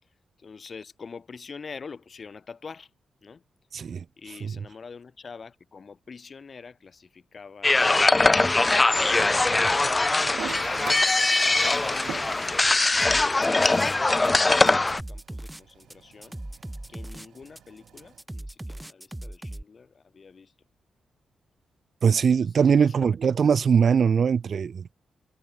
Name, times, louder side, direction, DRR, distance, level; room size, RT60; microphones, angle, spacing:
voice 1, 0.0-2.9 3.2-3.4 3.7-8.3 10.1-20.5 22.3-23.2, left 5 dB, 50° left, 7.0 m, -46 dB
voice 2, 3.7-4.0 22.0-24.9, right 6 dB, 60° right, 0.6 m, -21 dB
sound 1, 7.6-15.0, left 2 dB, 25° left, 0.4 m, -21 dB
Toilet flush, 10.2-18.2, right 9 dB, 75° right, 5.9 m, -43 dB
sound 2, 13.0-14.3 14.6-19.6, right 1 dB, 10° right, 3.3 m, -38 dB
supercardioid pair, 50°, 0 cm